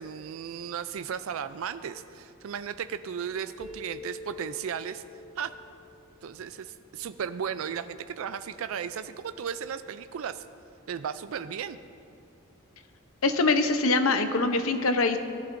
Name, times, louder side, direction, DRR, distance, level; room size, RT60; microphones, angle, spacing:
voice 1, 0.0-5.0 5.4-5.5 6.2-10.4 10.9-11.8, right 7 dB, 75° right, 12 dB, 0.4 m, -35 dB
sound 1, 3.6-7.1, left 2 dB, ahead, 0.6 m, -45 dB
voice 2, 13.2-15.2, left 3 dB, 80° left, 7 dB, 0.8 m, -23 dB
17.0 x 11.0 x 2.6 m, 2.5 s
head